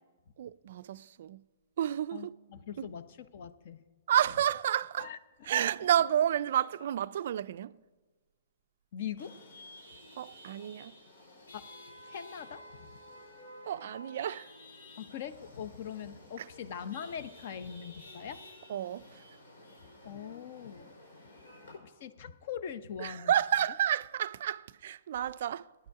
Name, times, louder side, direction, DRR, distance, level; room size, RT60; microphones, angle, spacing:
voice 1, 0.4-1.4 1.8-2.3 2.8-2.9 4.1-5.1 5.5-7.8 10.2-10.9 13.7-14.5 16.4-16.5 18.7-19.2 23.0-25.7, right 10 dB, 55° right, 0.3 m, -30 dB
voice 2, 2.1-3.8 5.0-5.2 8.9-9.3 11.5-11.7 12.0-13.0 15.0-18.4 20.0-20.9 21.7-23.3, left 8 dB, 45° left, 0.7 m, -42 dB
Chatter / Vehicle horn car horn honking / Traffic noise roadway noise, 9.2-21.8, left 1 dB, 85° left, 5.6 m, -52 dB
18.0 x 10.5 x 4.7 m
hypercardioid pair, 165°, 0 cm